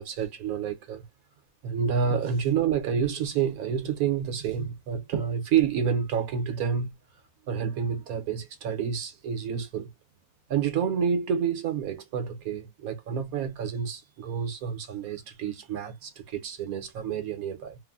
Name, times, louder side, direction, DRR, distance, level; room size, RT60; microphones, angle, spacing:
voice 1, 0.0-1.0 1.6-6.9 7.5-9.9 10.5-17.8, right 7 dB, 70° right, 1.2 m, -29 dB
3.2 x 2.1 x 2.3 m
omnidirectional pair, 1.6 m